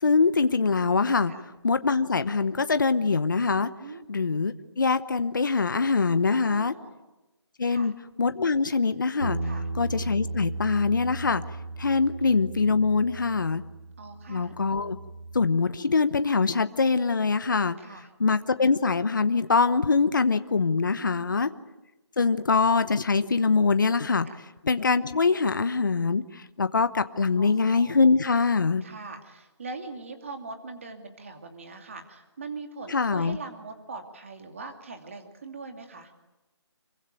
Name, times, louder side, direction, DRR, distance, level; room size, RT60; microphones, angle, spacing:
voice 1, 0.0-1.3 1.6-3.7 4.1-6.7 7.6-7.9 8.2-9.4 9.7-11.4 11.8-13.6 14.3-15.0 15.3-17.8 18.2-21.5 22.2-24.3 24.6-28.8 32.9-33.4, left 4 dB, 45° left, 11 dB, 1.0 m, -23 dB
voice 2, 6.3-7.0 7.7-7.9 9.4-9.7 12.0-12.3 14.0-14.5 17.8-18.1 21.0-21.4 24.2-24.4 27.4-28.1 28.8-36.1, right 3 dB, 30° right, 5 dB, 2.5 m, -42 dB
Bass guitar, 9.2-15.5, right 2 dB, 85° right, 3.1 m, -36 dB
26.0 x 23.5 x 9.1 m, 1.0 s
hypercardioid pair, 180°, 15 cm